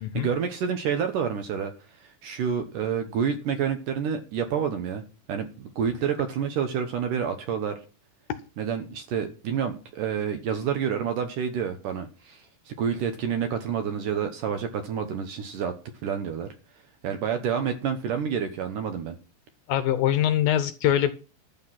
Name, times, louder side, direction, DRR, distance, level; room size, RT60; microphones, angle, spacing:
voice 1, 0.1-1.7 2.0-5.0 5.3-7.8 8.6-15.7 16.0-16.5 17.0-19.2, right 7 dB, 70° right, 7 dB, 2.2 m, -28 dB
voice 2, 19.7-21.1, left 11 dB, 75° left, 11 dB, 2.2 m, -23 dB
12.0 x 8.1 x 5.8 m, 0.34 s
omnidirectional pair, 4.8 m